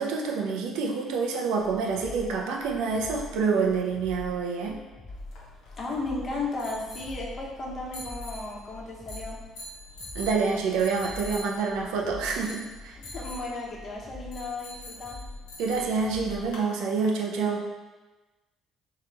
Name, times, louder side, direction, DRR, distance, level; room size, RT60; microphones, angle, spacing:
voice 1, 0.0-4.8 10.1-13.0 15.6-17.6, right 5 dB, 75° right, 0 dB, 0.5 m, -27 dB
sound 1, 1.6-16.5, left 2 dB, 30° left, 0.4 m, -44 dB
sound 2, 5.1-16.7, left 1 dB, 75° left, 0.9 m, -45 dB
voice 2, 5.8-9.4 13.0-15.2, left 2 dB, 45° left, -3 dB, 1.0 m, -34 dB
3.2 x 2.9 x 3.9 m, 1.2 s
hypercardioid pair, 55°, 0 cm